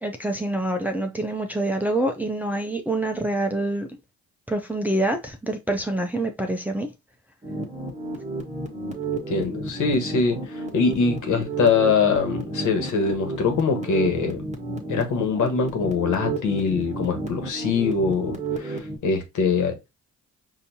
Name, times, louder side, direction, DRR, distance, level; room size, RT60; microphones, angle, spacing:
voice 1, 0.0-4.0 4.5-6.9, right 1 dB, 5° right, 0.5 m, -26 dB
sound 1, 7.4-19.0, right 3 dB, 25° right, 1.4 m, -32 dB
voice 2, 9.3-14.4 14.9-19.9, left 5 dB, 75° left, 1.5 m, -23 dB
5.1 x 2.7 x 2.7 m
cardioid pair, 90°, 30 cm